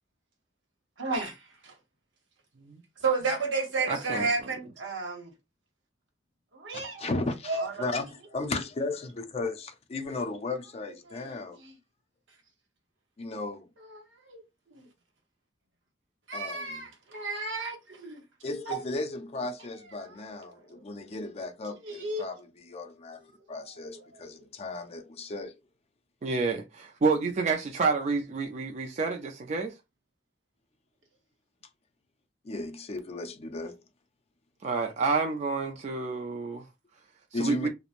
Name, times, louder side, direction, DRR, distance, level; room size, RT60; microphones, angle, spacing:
voice 1, 1.0-1.7 3.0-5.3 6.5-7.1 7.5-7.9 11.1-11.7 13.9-14.4 14.7-14.9 16.3-18.2 18.6-18.8 20.0-20.2 20.5-20.8 21.8-22.3 23.4-23.5 23.9-24.2, right 3 dB, 85° right, 0.9 m, -33 dB
voice 2, 3.9-4.3 26.2-29.7 34.6-36.6 37.3-37.7, right 4 dB, 40° right, 0.3 m, -29 dB
voice 3, 6.7-11.6 13.2-13.7 16.3-16.8 18.4-22.4 22.7-25.6 32.4-33.8 37.3-37.7, left 2 dB, 35° left, 0.4 m, -35 dB
3.0 x 2.0 x 2.4 m
head